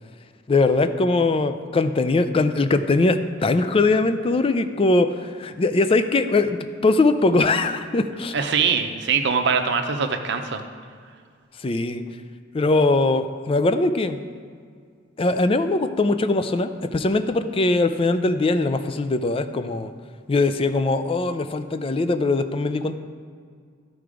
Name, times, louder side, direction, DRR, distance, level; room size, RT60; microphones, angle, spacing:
voice 1, 0.5-6.6 6.8-8.5 11.6-12.0 12.5-14.2 15.2-19.9 20.3-23.0, left 2 dB, 30° left, 10 dB, 0.4 m, -21 dB
voice 2, 8.3-10.6, right 6 dB, 60° right, 6 dB, 0.7 m, -22 dB
12.5 x 4.6 x 5.0 m, 2.1 s
head